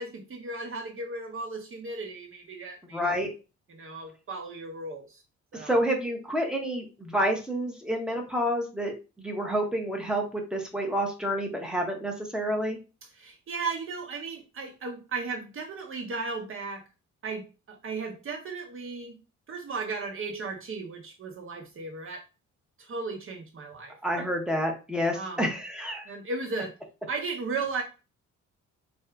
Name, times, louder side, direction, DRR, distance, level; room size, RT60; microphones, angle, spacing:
voice 1, 0.0-3.1 3.7-5.2 5.5-5.8 13.2-16.8 17.2-19.2 19.5-22.2 22.8-24.3 25.1-25.4 26.1-26.7 27.1-27.8, right 4 dB, 45° right, 3 dB, 1.0 m, -35 dB
voice 2, 2.9-3.3 5.5-12.8 24.0-26.1, equal, 5° right, 1 dB, 0.8 m, -29 dB
2.7 x 2.3 x 3.4 m, 0.31 s
cardioid pair, 90°, 30 cm